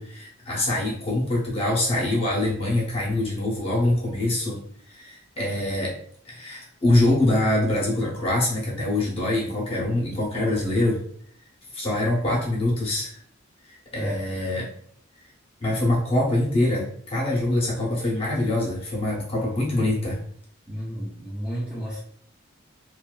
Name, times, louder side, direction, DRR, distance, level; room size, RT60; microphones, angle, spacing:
voice 1, 0.0-4.6 4.9-6.0 6.3-11.0 11.7-13.2 13.9-14.7 15.6-20.2, left 1 dB, 30° left, -4 dB, 0.8 m, -24 dB
voice 2, 20.7-22.0, equal, 5° right, -7 dB, 0.4 m, -31 dB
2.6 x 2.2 x 2.3 m, 0.63 s
head